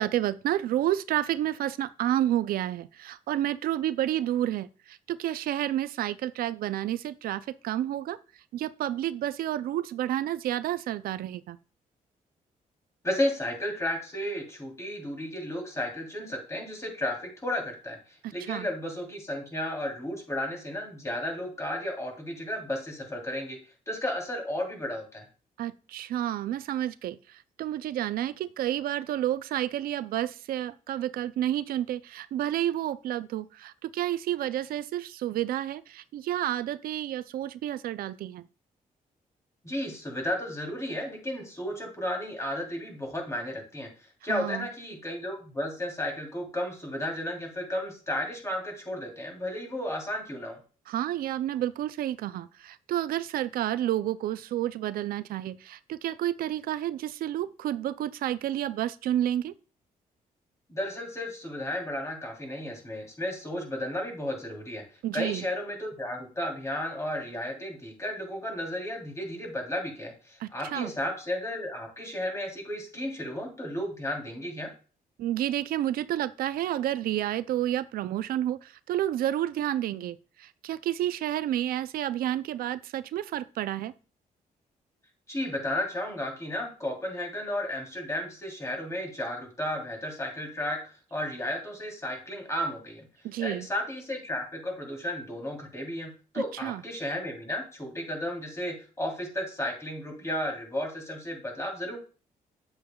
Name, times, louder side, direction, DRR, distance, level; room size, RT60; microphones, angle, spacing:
voice 1, 0.0-8.2 8.5-11.6 18.2-18.7 25.6-38.4 44.3-44.7 50.9-59.5 65.0-65.4 70.4-70.9 75.2-83.9 93.2-93.7 96.3-96.8, right 12 dB, 85° right, 0.4 m, -30 dB
voice 2, 13.0-23.6 23.9-25.3 39.6-50.6 60.7-64.8 65.1-74.7 85.3-93.1 93.4-102.0, left 1 dB, 20° left, 3.0 m, -33 dB
8.5 x 7.7 x 2.3 m
cardioid pair, 100°, 15 cm